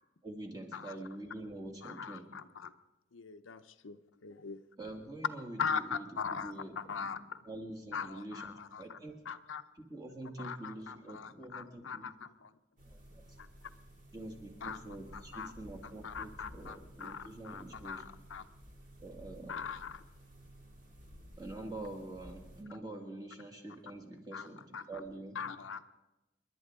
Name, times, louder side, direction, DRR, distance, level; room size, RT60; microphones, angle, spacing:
voice 1, 0.2-2.3 4.8-7.1 7.4-9.2 9.7-12.1 12.9-13.2 14.1-18.0 19.0-19.6 21.4-25.4, right 2 dB, 20° right, 1 dB, 2.0 m, -46 dB
voice 2, 1.8-2.7 3.1-4.6 5.6-7.4 7.9-9.0 9.3-9.6 10.4-12.5 13.4-13.5 14.6-14.8 15.1-15.5 16.0-18.4 19.5-20.0 24.3-24.5 24.7-24.8 25.4-25.8, left 6 dB, 90° left, 9 dB, 0.7 m, -41 dB
sound 1, 12.8-22.6, equal, 40° right, 2.3 m, -54 dB
28.5 x 11.5 x 3.7 m, 1.0 s
head